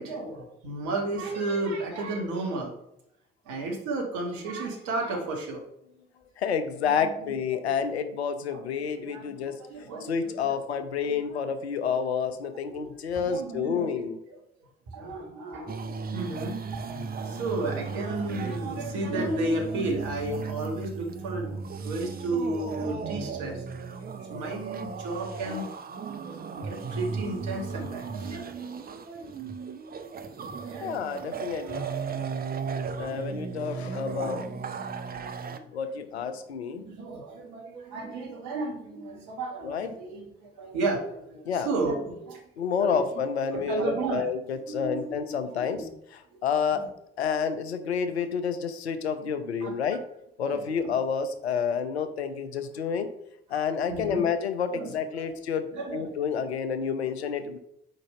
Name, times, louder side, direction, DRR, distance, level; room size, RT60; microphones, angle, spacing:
voice 1, 0.0-2.8 3.4-5.6 6.9-7.6 8.5-11.2 12.6-14.3 14.9-23.6 24.0-25.7 26.2-29.3 30.7-30.9 31.6-32.4 32.8-33.3 33.9-34.6 35.5-35.7 36.7-42.4 42.8-43.2 43.5-44.3 44.7-45.9 46.3-46.4 46.7-46.9 49.6-50.0 50.4-50.9 53.9-54.3 54.7-55.3 55.7-56.2, right 2 dB, 60° right, 0 dB, 1.5 m, -34 dB
voice 2, 6.4-9.6 10.1-14.2 30.8-31.8 33.0-34.4 35.7-36.8 39.6-39.9 41.5-41.7 42.6-46.9 47.2-50.0 50.4-53.1 53.5-57.6, left 6 dB, 80° left, 10 dB, 0.5 m, -29 dB
sound 1, 15.7-35.6, right 5 dB, 30° right, 0.6 m, -36 dB
4.8 x 3.9 x 5.4 m, 0.77 s
figure-of-eight pair, 40°, 32 cm